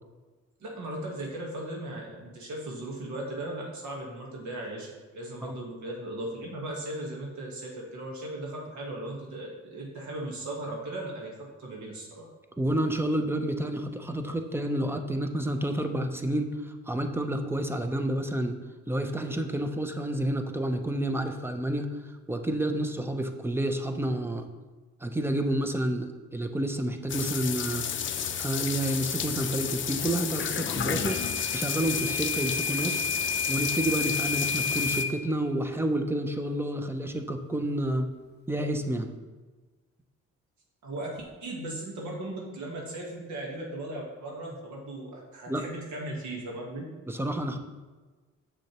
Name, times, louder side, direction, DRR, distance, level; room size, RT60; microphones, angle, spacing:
voice 1, 0.6-12.3 40.8-46.9, right 1 dB, 70° right, -2 dB, 1.3 m, -37 dB
voice 2, 12.6-18.6 18.9-21.9 22.3-24.5 25.0-27.9 28.4-31.2 31.5-33.1 33.5-38.1 38.5-39.1 45.5-45.6 47.1-47.6, right 1 dB, 10° right, 6 dB, 0.6 m, -29 dB
sound 1, 27.1-35.0, left 8 dB, 40° left, 0.5 m, -32 dB
Microwave oven / Alarm, 31.1-35.2, left 4 dB, 35° right, 1.1 m, -31 dB
6.3 x 6.3 x 2.9 m, 1.3 s
cardioid pair, 90°, 30 cm